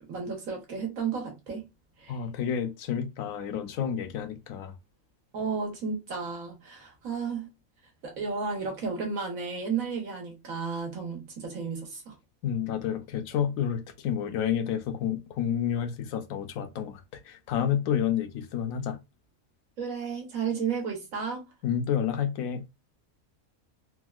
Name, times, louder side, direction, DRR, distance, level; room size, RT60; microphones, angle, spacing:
voice 1, 0.1-1.7 2.0-2.2 5.3-7.5 8.0-12.2 19.8-21.5, right 5 dB, 75° right, 1.4 m, -33 dB
voice 2, 2.1-4.7 12.4-19.0 21.6-22.6, left 9 dB, 75° left, 1.0 m, -30 dB
3.4 x 2.1 x 2.3 m
omnidirectional pair, 1.5 m